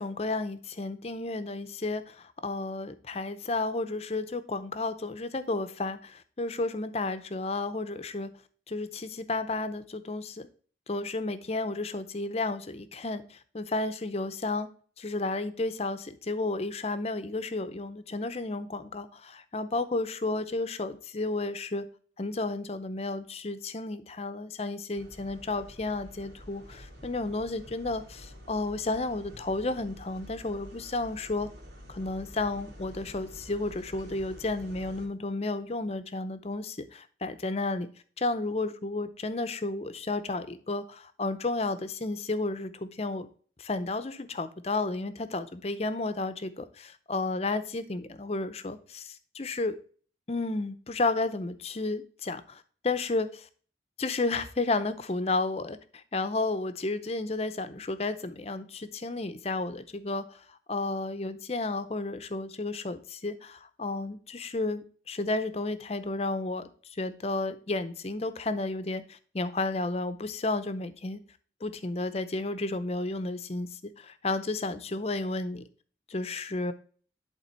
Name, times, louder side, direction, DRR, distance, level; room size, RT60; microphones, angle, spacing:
voice 1, 0.0-8.3 8.7-10.5 10.9-14.7 15.0-21.8 22.2-31.5 31.9-37.9 38.2-43.3 43.6-49.7 50.3-53.5 54.0-55.8 56.1-60.2 60.7-66.6 67.0-71.2 71.6-73.7 74.0-75.6 76.1-76.7, left 2 dB, 35° left, 12 dB, 0.6 m, -32 dB
sound 1, 24.9-35.1, equal, 65° right, 2.5 m, -48 dB
11.0 x 3.7 x 4.4 m, 0.43 s
head